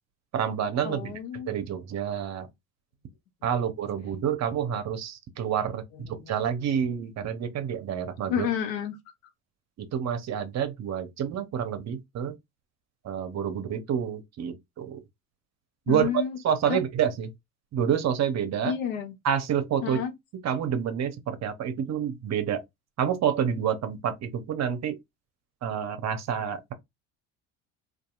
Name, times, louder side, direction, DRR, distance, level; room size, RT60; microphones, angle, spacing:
voice 1, 0.3-1.1 1.5-2.5 3.4-8.5 9.8-12.3 13.0-15.0 15.9-16.1 16.4-17.3 17.7-18.7 19.2-20.0 20.4-22.6 23.0-25.0 25.6-26.7, right 8 dB, 40° right, 0.7 m, -28 dB
voice 2, 0.8-1.6 6.1-6.4 8.3-8.9 15.9-16.4 16.7-16.8 18.6-19.2 19.8-20.1, left 9 dB, 80° left, 0.8 m, -30 dB
2.8 x 2.4 x 2.3 m
hypercardioid pair, 70°, 40 cm